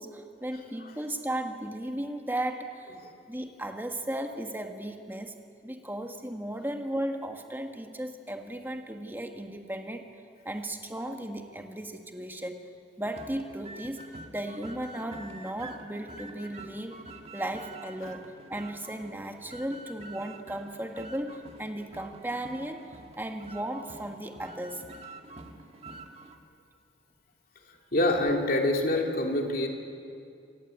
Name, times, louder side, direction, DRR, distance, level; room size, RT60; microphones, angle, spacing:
voice 1, 0.0-3.0 3.3-5.4 5.6-10.1 10.4-12.6 13.0-14.0 14.3-17.0 17.3-24.8, right 1 dB, 10° right, 4 dB, 1.5 m, -36 dB
sound 1, 13.0-26.4, right 2 dB, 35° right, 1.7 m, -47 dB
voice 2, 27.9-29.7, left 1 dB, 55° left, 1 dB, 2.9 m, -25 dB
27.0 x 17.5 x 8.3 m, 2.4 s
head